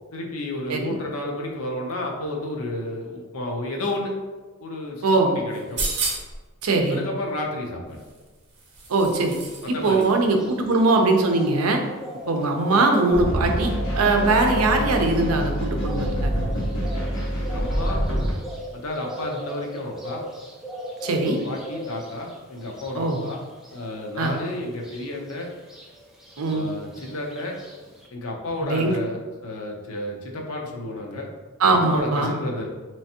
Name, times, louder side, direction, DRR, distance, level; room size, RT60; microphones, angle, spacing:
voice 1, 0.1-4.1 4.6-5.8 6.9-8.0 9.6-10.1 17.4-18.0 18.7-20.2 21.2-23.4 23.7-25.5 26.5-27.6 28.1-31.3 31.6-32.7, left 1 dB, 80° left, 0 dB, 0.7 m, -31 dB
voice 2, 5.0-5.4 6.6-7.0 8.9-9.4 9.7-11.8 12.3-16.3 21.0-21.4 23.0-23.2 24.2-24.4 26.4-26.7 28.6-29.0 31.6-32.3, right 2 dB, 85° right, 3 dB, 0.5 m, -21 dB
sound 1, 5.5-6.4 7.9-9.7 10.0-10.1, right 3 dB, 50° right, 0.8 m, -31 dB
sound 2, 9.3-28.1, equal, ahead, 0.3 m, -39 dB
sound 3, 13.1-18.3, equal, 65° left, 1.0 m, -26 dB
3.3 x 3.1 x 2.8 m, 1.3 s
head